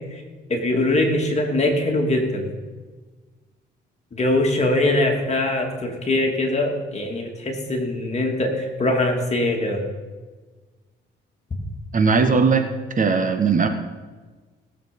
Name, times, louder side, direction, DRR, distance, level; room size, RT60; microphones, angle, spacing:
voice 1, 0.5-2.5 4.1-9.8, left 1 dB, 35° left, 1 dB, 2.7 m, -22 dB
voice 2, 11.9-12.7 13.0-13.7, right 5 dB, 40° right, 7 dB, 1.3 m, -18 dB
18.0 x 7.4 x 5.4 m, 1.4 s
cardioid pair, 90°, 20 cm